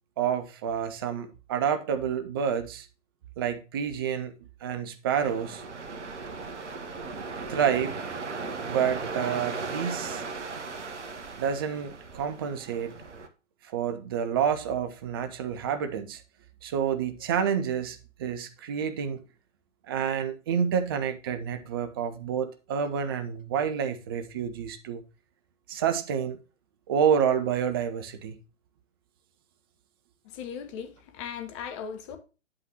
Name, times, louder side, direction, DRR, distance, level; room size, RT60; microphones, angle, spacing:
voice 1, 0.2-2.9 3.4-4.3 4.6-5.6 7.5-8.0 8.7-10.3 11.4-12.9 13.7-16.2 16.6-19.2 19.9-25.0 25.7-26.4 26.9-28.4, right 8 dB, 20° right, 0.5 m, -28 dB
sound 1, 5.2-13.3, right 4 dB, 65° right, 1.2 m, -37 dB
voice 2, 30.2-32.2, left 7 dB, 25° left, 1.0 m, -38 dB
8.5 x 7.6 x 2.9 m
figure-of-eight pair, 125°, 37 cm